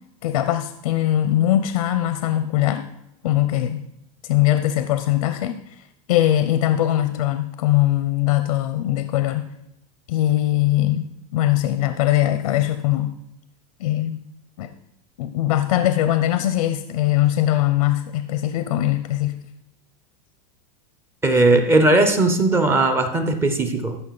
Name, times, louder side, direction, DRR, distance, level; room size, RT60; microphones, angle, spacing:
voice 1, 0.2-2.9 3.2-3.9 4.2-9.5 10.1-13.1 13.8-14.2 14.6-14.7 15.2-19.4, left 13 dB, 80° left, 11 dB, 0.7 m, -21 dB
voice 2, 21.2-24.0, right 2 dB, 10° right, 7 dB, 0.6 m, -18 dB
14.0 x 6.3 x 4.0 m, 0.82 s
supercardioid pair, 170°, 19 cm